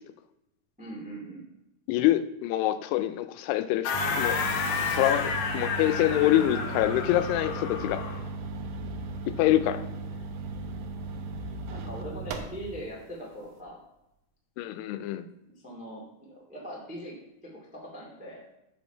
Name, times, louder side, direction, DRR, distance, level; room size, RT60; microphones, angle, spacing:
voice 1, 0.8-1.4 11.7-13.8 15.4-17.2 17.4-18.4, right 1 dB, 10° right, -3 dB, 0.4 m, -41 dB
voice 2, 1.9-4.4 4.9-8.0 9.4-9.8 14.6-15.3, left 14 dB, 90° left, 10 dB, 2.6 m, -25 dB
sound 1, 3.8-8.3, left 5 dB, 70° left, 2.3 m, -31 dB
sound 2, 3.9-12.9, right 3 dB, 85° right, 1.8 m, -36 dB
7.3 x 6.0 x 4.4 m, 0.87 s
omnidirectional pair, 4.6 m